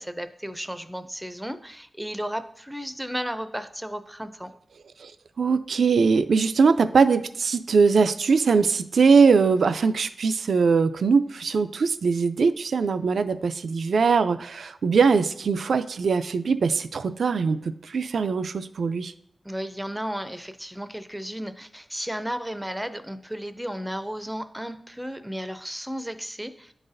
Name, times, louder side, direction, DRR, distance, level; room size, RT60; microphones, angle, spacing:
voice 1, 0.0-4.5 19.4-26.7, equal, 5° right, 10 dB, 0.4 m, -34 dB
voice 2, 5.4-19.1, right 5 dB, 85° right, 11 dB, 0.3 m, -21 dB
10.5 x 3.9 x 2.6 m, 0.69 s
wide cardioid pair, 125°, 0 cm